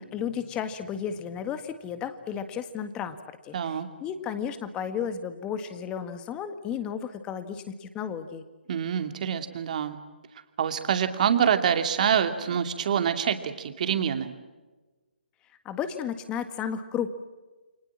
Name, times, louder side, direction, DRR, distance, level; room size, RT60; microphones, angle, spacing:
voice 1, 0.0-3.2 3.4-8.4 15.7-17.1, left 8 dB, 15° left, 10 dB, 1.8 m, -33 dB
voice 2, 3.5-3.9 8.7-10.0 10.6-14.3, right 8 dB, 45° right, 8 dB, 2.6 m, -26 dB
30.0 x 24.0 x 7.5 m, 1.2 s
figure-of-eight pair, 145°, 6 cm